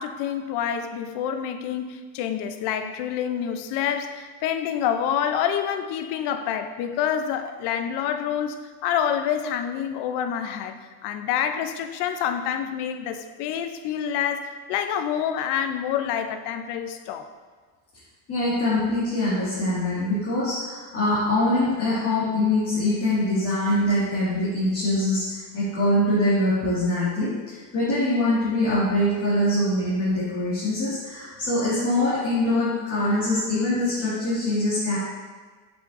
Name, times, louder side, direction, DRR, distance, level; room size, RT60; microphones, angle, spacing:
voice 1, 0.0-10.7 11.0-17.3, left 9 dB, 75° left, 8 dB, 0.7 m, -27 dB
voice 2, 18.3-35.0, left 1 dB, 35° left, -10 dB, 2.0 m, -23 dB
7.8 x 5.8 x 2.6 m, 1.4 s
cardioid pair, 150°, 40 cm